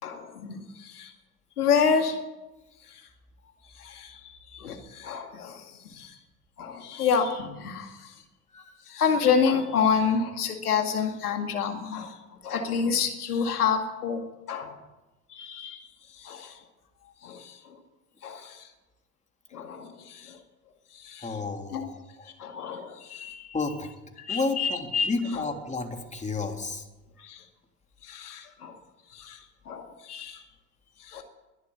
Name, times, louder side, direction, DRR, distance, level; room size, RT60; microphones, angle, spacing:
voice 1, 0.0-1.1 1.6-2.2 2.9-3.0 3.8-6.1 6.6-8.1 8.5-12.2 12.4-14.2 14.5-14.7 15.3-15.9 16.2-16.6 17.2-17.7 18.2-18.7 19.5-20.4 20.9-21.4 21.7-21.9 22.4-23.5 24.2-25.1 25.3-25.4 27.2-27.4 28.0-28.7 29.1-30.4 31.0-31.2, left 6 dB, 75° left, 5 dB, 2.2 m, -29 dB
voice 2, 21.2-22.3 23.5-23.9 24.3-26.8, left 3 dB, 15° left, 4 dB, 3.3 m, -31 dB
22.0 x 12.5 x 9.9 m, 1.0 s
figure-of-eight pair, 65°, 45 cm